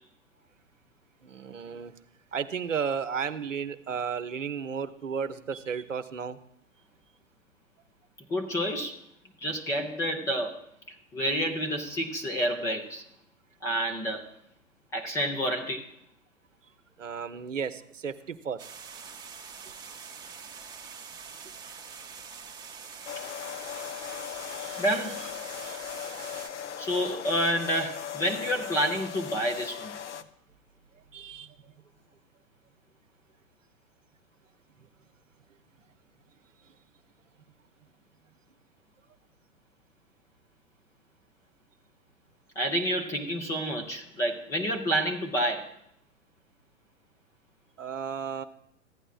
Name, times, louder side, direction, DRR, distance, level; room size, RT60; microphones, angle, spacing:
voice 1, 1.2-1.9 2.3-6.4 17.0-18.7 24.2-24.8 25.6-25.8 31.1-31.5 47.8-48.4, right 6 dB, 70° right, 10 dB, 0.8 m, -34 dB
voice 2, 8.3-9.0 9.4-10.6 10.9-13.0 13.6-14.3 14.9-15.9 23.2-23.3 24.8-25.2 26.8-29.9 42.6-45.7, equal, 10° left, 1 dB, 0.5 m, -29 dB
Small Waterfall (more distant approach), 18.6-26.5, right 6 dB, 10° right, 0.8 m, -44 dB
sound 1, 23.1-30.2, left 9 dB, 65° left, 0.7 m, -38 dB
15.0 x 9.8 x 2.4 m, 0.72 s
figure-of-eight pair, 110°, 39 cm